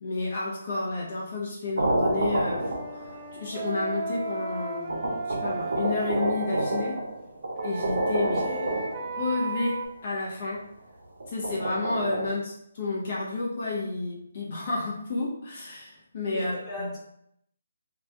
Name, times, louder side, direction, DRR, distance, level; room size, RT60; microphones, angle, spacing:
voice 1, 0.0-5.1 5.4-7.1 7.6-8.5 9.2-10.6 11.3-16.9, left 3 dB, 50° left, -3 dB, 0.5 m, -31 dB
sound 1, 1.8-3.3 4.2-4.3 4.9-9.4 11.2-12.3, right 1 dB, 85° right, 0.5 m, -29 dB
Wind instrument woodwind instrument, 2.6-7.0 7.6-9.9, right 3 dB, 20° right, 0.4 m, -35 dB
voice 2, 8.4-8.7 16.2-17.0, left 1 dB, 10° left, -8 dB, 0.8 m, -37 dB
2.2 x 2.1 x 2.8 m, 0.74 s
hypercardioid pair, 165°, 0 cm